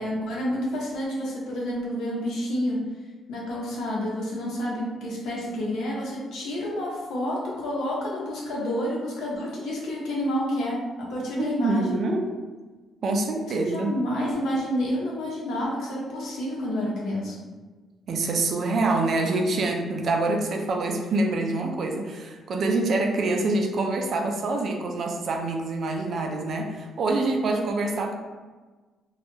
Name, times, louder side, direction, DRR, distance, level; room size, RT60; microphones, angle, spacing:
voice 1, 0.0-2.9 3.3-12.0 13.6-17.4, equal, 80° left, -4 dB, 0.7 m, -29 dB
voice 2, 11.4-12.2 13.0-13.9 18.1-28.2, right 2 dB, 60° right, 3 dB, 0.4 m, -26 dB
2.2 x 2.1 x 3.1 m, 1.3 s
cardioid pair, 90°, 0 cm